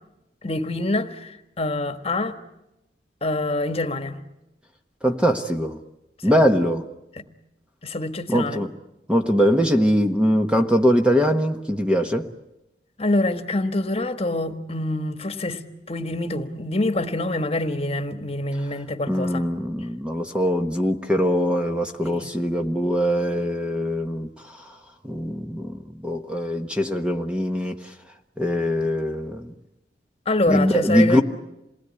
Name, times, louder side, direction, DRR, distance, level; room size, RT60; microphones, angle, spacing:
voice 1, 0.4-1.3 1.6-2.4 3.2-4.2 7.1-7.3 7.8-8.6 13.0-15.6 15.9-19.4 22.0-22.3 30.3-31.2, left 2 dB, 35° left, 1.5 m, -25 dB
voice 2, 5.0-5.8 6.2-6.9 8.3-8.7 9.1-12.3 19.1-24.3 25.0-27.8 28.4-29.5 30.5-31.2, equal, 5° right, 1.1 m, -22 dB
27.5 x 20.0 x 9.7 m
head